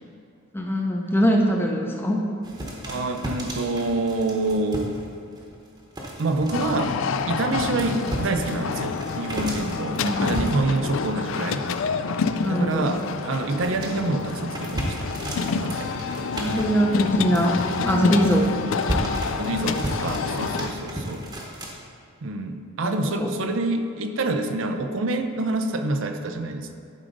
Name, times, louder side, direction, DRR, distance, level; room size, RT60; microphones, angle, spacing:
voice 1, 0.5-2.2 9.9-10.4 12.4-13.0 16.3-18.5 22.8-23.3, equal, 10° left, 0 dB, 0.6 m, -22 dB
sound 1, 2.4-5.0 5.3-7.2 7.5-11.1 11.5-12.0 12.3-21.7, equal, 20° right, 1.0 m, -34 dB
voice 2, 2.8-5.0 6.2-7.0 7.3-11.6 12.4-15.1 15.4-15.9 17.8-18.1 19.3-21.2 22.2-26.7, right 2 dB, 60° right, 6 dB, 0.5 m, -27 dB
sound 2, 6.5-20.7, left 5 dB, 65° left, 0.3 m, -28 dB
11.0 x 5.0 x 3.9 m, 2.5 s
head